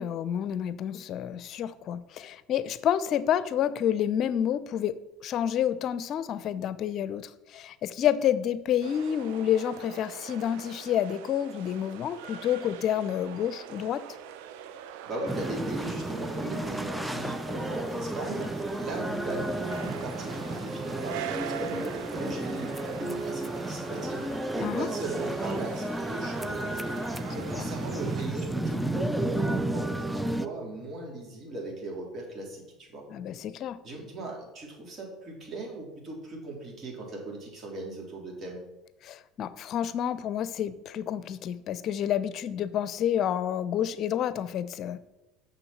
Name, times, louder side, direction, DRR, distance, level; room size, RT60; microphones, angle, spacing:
voice 1, 0.0-5.0 5.2-14.0 24.6-24.9 27.5-27.7 33.1-33.8 39.0-45.0, left 10 dB, 50° left, 15 dB, 0.6 m, -29 dB
sound 1, 8.8-28.3, right 10 dB, 80° right, 0.7 m, -43 dB
voice 2, 15.1-26.7 27.3-33.0 33.8-38.6, right 2 dB, 45° right, -1 dB, 3.7 m, -38 dB
sound 2, 15.3-30.5, right 1 dB, 5° right, 0.6 m, -32 dB
6.9 x 6.4 x 7.2 m, 0.96 s
supercardioid pair, 90°, 0 cm